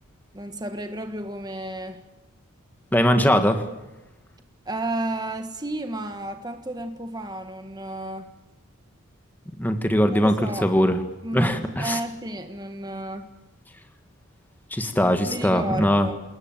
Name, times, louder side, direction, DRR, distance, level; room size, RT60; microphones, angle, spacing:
voice 1, 0.3-2.0 4.6-8.3 10.1-10.7 11.2-13.3 15.0-16.2, right 1 dB, 20° right, 1.5 m, -32 dB
voice 2, 2.9-3.6 9.6-10.3 10.6-11.0 11.3-12.0 14.7-16.1, equal, 10° left, 1.7 m, -20 dB
28.0 x 21.0 x 9.1 m
head